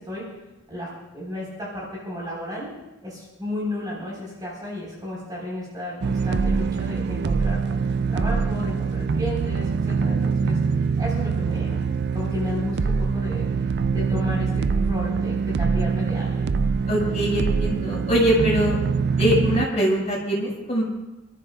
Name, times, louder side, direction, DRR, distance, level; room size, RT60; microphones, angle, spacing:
voice 1, 1.1-2.7 3.0-11.8 12.1-16.4, left 1 dB, 20° right, -5 dB, 4.2 m, -33 dB
sound 1, 6.0-19.7, right 5 dB, 55° right, 0.4 m, -24 dB
voice 2, 16.9-18.8 19.2-20.8, equal, 35° left, -4 dB, 5.5 m, -22 dB
28.5 x 13.5 x 2.4 m, 0.99 s
head